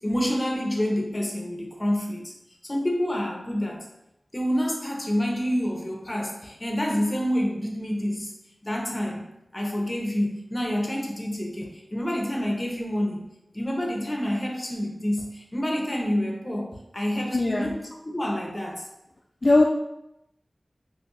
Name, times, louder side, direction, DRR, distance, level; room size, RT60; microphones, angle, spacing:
voice 1, 0.0-2.3 2.6-3.9 4.3-8.3 8.6-9.3 9.5-13.2 13.5-18.9, equal, 30° left, 0 dB, 0.8 m, -28 dB
voice 2, 17.3-17.7 19.4-19.6, left 2 dB, 50° left, -1 dB, 0.3 m, -19 dB
3.0 x 2.5 x 3.8 m, 0.86 s
wide cardioid pair, 50°, 0 cm